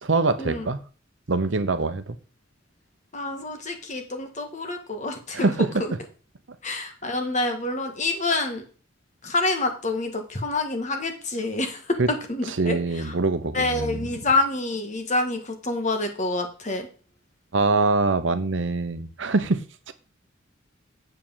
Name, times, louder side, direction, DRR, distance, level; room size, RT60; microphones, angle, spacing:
voice 1, 0.0-0.8 1.3-2.2 5.3-5.8 12.0-12.1 12.5-14.1 17.5-19.9, right 3 dB, 70° right, 11 dB, 0.8 m, -24 dB
voice 2, 3.1-5.5 5.8-5.9 6.6-8.6 9.2-13.1 13.5-16.9, left 2 dB, 40° left, 5 dB, 1.7 m, -27 dB
7.6 x 4.9 x 7.4 m, 0.38 s
head